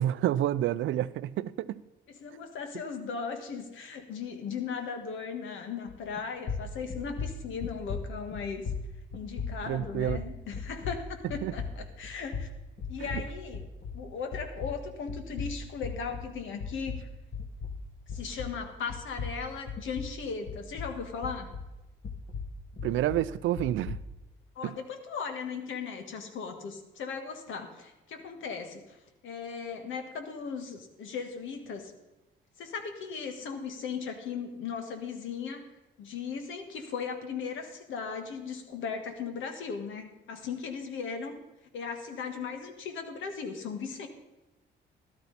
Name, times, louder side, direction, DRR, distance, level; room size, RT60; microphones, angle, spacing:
voice 1, 0.0-1.8 9.7-10.2 11.4-11.5 13.0-13.2 22.8-24.0 24.6-24.7, right 12 dB, 80° right, 17 dB, 0.5 m, -29 dB
voice 2, 2.1-8.7 9.1-12.5 12.9-13.7 13.9-17.1 18.1-21.5 24.5-29.0 29.2-31.9 32.6-35.6 36.0-41.4 41.7-44.1, left 6 dB, 80° left, 6 dB, 1.6 m, -37 dB
sound 1, 5.9-6.2 6.4-14.1 14.3-18.6 18.9-21.7 22.0-24.1, left 5 dB, 55° left, 1.8 m, -38 dB
13.0 x 12.0 x 4.1 m, 1.0 s
cardioid pair, 90°, 20 cm